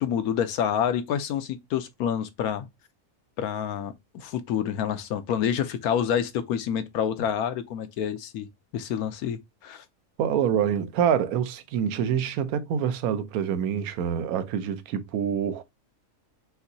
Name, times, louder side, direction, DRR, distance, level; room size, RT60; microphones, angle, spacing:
voice 1, 0.0-2.7 3.4-8.5 8.7-9.8, left 9 dB, 75° left, 1.1 m, -28 dB
voice 2, 10.2-15.6, right 8 dB, 70° right, 1.1 m, -26 dB
5.8 x 2.7 x 2.7 m
omnidirectional pair, 1.6 m